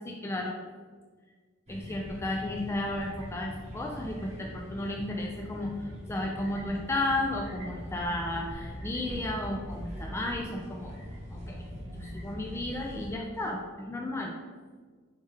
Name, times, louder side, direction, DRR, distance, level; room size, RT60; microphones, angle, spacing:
voice 1, 0.1-0.6 1.7-10.9 11.3-11.6 11.9-14.3, left 1 dB, 15° left, 0 dB, 0.3 m, -33 dB
sound 1, 1.7-13.1, equal, 35° right, 1.0 m, -42 dB
4.3 x 3.3 x 3.3 m, 1.5 s
head